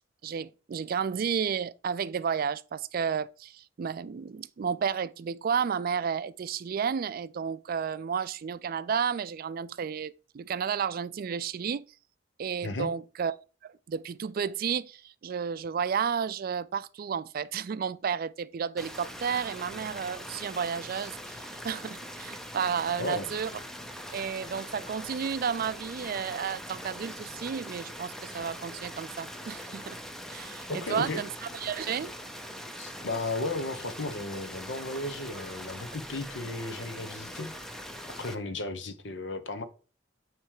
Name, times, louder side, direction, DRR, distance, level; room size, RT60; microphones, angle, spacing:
voice 1, 0.2-11.9 12.4-13.3 13.6-23.5 24.1-30.0 30.3-32.1, right 7 dB, 50° right, 0.4 m, -32 dB
sound 1, 18.8-38.3, equal, ahead, 0.7 m, -42 dB
voice 2, 30.7-31.2 32.8-37.5 38.2-39.7, left 2 dB, 70° left, 1.0 m, -34 dB
8.9 x 3.2 x 4.8 m
head